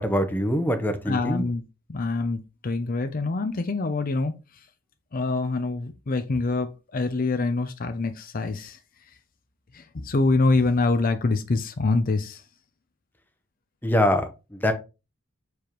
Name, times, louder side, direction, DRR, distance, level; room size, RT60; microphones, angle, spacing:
voice 1, 0.0-1.4 13.8-14.7, left 1 dB, 10° left, 0.8 m, -24 dB
voice 2, 1.1-1.6 1.9-4.3 5.1-8.8 9.7-12.4, left 3 dB, 45° left, 0.6 m, -25 dB
6.9 x 4.8 x 3.0 m
head